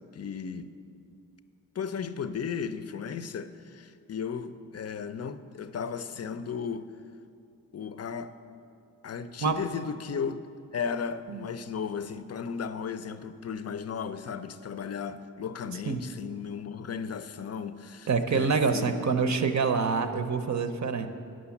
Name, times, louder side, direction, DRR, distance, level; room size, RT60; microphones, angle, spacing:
voice 1, 0.1-0.7 1.7-6.9 7.7-8.3 9.0-10.4 10.7-19.0, left 6 dB, 45° left, 12 dB, 0.5 m, -35 dB
voice 2, 18.1-21.1, right 5 dB, 55° right, 7 dB, 0.7 m, -26 dB
9.6 x 6.3 x 7.1 m, 2.6 s
wide cardioid pair, 95°, 35 cm